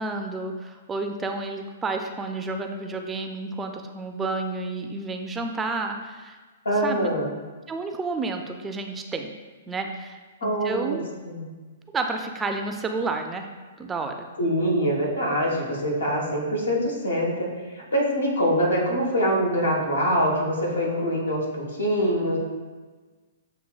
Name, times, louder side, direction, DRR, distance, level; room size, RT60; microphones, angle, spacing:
voice 1, 0.0-6.4 6.8-7.0 7.7-9.3 9.7-11.0 11.9-13.5 13.8-14.3, right 3 dB, 15° right, 5 dB, 0.3 m, -30 dB
voice 2, 6.6-7.3 10.4-11.0 11.2-11.4 14.4-22.4, equal, 85° left, -2 dB, 1.2 m, -24 dB
7.2 x 2.7 x 2.3 m, 1.4 s
hypercardioid pair, 120°, 0 cm